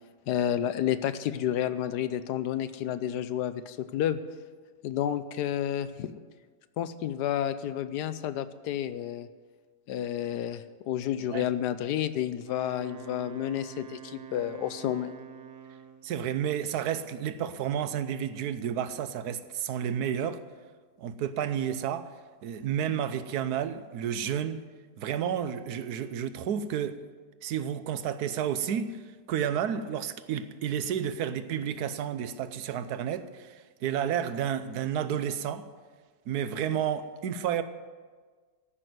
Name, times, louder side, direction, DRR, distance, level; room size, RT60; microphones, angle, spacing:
voice 1, 0.3-4.2 4.8-6.1 6.8-9.3 9.9-15.1, left 10 dB, 75° left, 1.2 m, -30 dB
voice 2, 11.1-11.5 16.0-20.4 21.0-22.1 22.4-24.6 25.0-27.1 27.4-29.0 29.3-35.7 36.3-37.6, right 9 dB, 70° right, 1.2 m, -31 dB
Wind instrument woodwind instrument, 12.4-16.1, right 8 dB, 45° right, 0.7 m, -46 dB
14.0 x 6.2 x 9.3 m
omnidirectional pair, 1.8 m